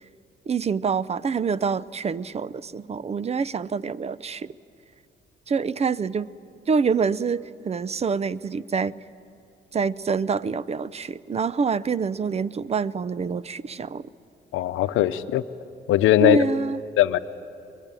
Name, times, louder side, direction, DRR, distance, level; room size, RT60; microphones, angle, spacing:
voice 1, 0.5-4.5 5.5-6.3 6.7-8.9 9.7-14.1 16.2-16.8, right 5 dB, 30° right, 18 dB, 0.6 m, -26 dB
voice 2, 14.5-15.4 15.9-16.4 17.0-17.2, left 13 dB, 85° left, 12 dB, 0.8 m, -19 dB
22.5 x 22.0 x 9.0 m, 2.6 s
cardioid pair, 90°, 20 cm